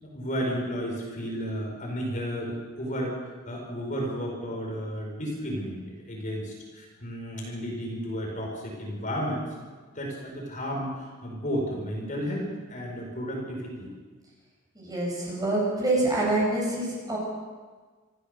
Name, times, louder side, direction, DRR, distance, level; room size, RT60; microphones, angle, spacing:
voice 1, 0.0-3.2 3.4-9.4 9.9-13.9, equal, 35° left, -1 dB, 4.9 m, -33 dB
voice 2, 14.8-17.2, right 2 dB, 20° right, -3 dB, 8.0 m, -26 dB
27.0 x 15.0 x 6.8 m, 1.4 s
head